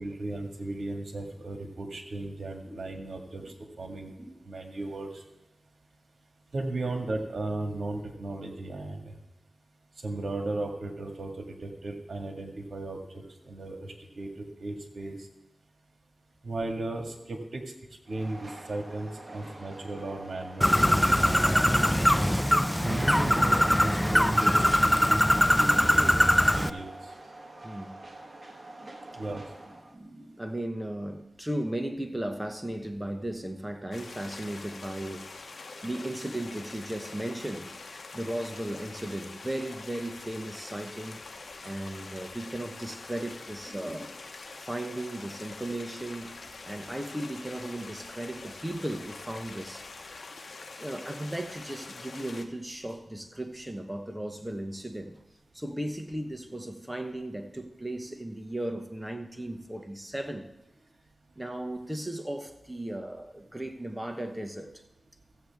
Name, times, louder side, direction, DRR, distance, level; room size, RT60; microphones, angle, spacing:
voice 1, 0.0-4.1 4.5-5.2 6.5-9.1 10.0-14.3 14.6-15.2 16.4-17.6 18.1-21.4 22.8-24.5 24.8-26.9 29.2-29.4, right 2 dB, 70° right, 1.8 m, -36 dB
voice 2, 3.9-4.6 23.0-23.1 27.6-28.0 28.8-35.3 35.8-41.2 41.6-44.1 44.6-46.3 46.6-49.8 50.8-55.2 55.5-60.5 61.4-64.7, right 1 dB, 15° right, 1.1 m, -36 dB
Train, 18.1-30.0, right 2 dB, 40° right, 1.4 m, -45 dB
Bird, 20.6-26.7, equal, 5° left, 0.4 m, -22 dB
sound 1, 33.9-52.4, left 3 dB, 70° left, 0.9 m, -45 dB
15.5 x 7.9 x 3.5 m
cardioid pair, 60°, 0 cm